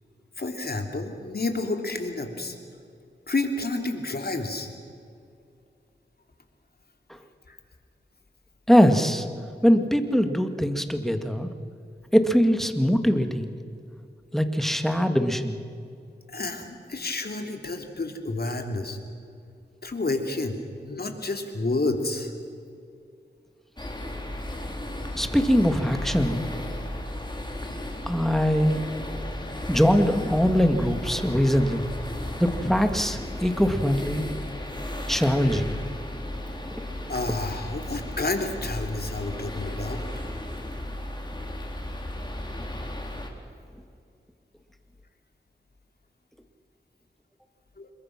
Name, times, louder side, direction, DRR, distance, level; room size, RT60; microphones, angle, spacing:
voice 1, 0.4-2.6 3.3-4.7 7.5-7.6 16.3-19.0 19.8-20.6 20.8-22.3 37.1-40.0 47.8-47.9, left 2 dB, 55° left, 4 dB, 3.1 m, -30 dB
voice 2, 8.7-9.3 9.6-11.5 12.1-13.5 14.3-15.6 25.2-26.5 28.1-28.8 29.7-31.9 32.4-34.2 35.1-35.7, equal, ahead, 7 dB, 2.1 m, -22 dB
sound 1, 23.8-43.3, left 1 dB, 25° left, 3.6 m, -34 dB
27.0 x 22.0 x 6.1 m, 2.4 s
cardioid pair, 50°, 19 cm